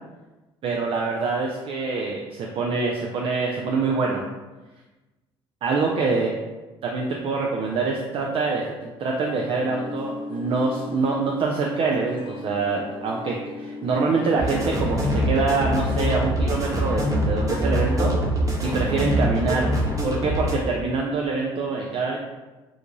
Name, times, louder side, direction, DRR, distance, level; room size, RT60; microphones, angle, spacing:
voice 1, 0.6-4.2 5.6-6.3 6.8-18.1 18.7-19.7 20.0-22.2, right 4 dB, 45° right, -1 dB, 0.4 m, -25 dB
sound 1, 9.6-14.7, left 3 dB, 40° left, 0.3 m, -37 dB
sound 2, 14.4-20.5, equal, 25° right, 0.8 m, -24 dB
2.4 x 2.3 x 3.0 m, 1.2 s
hypercardioid pair, 55°, 13 cm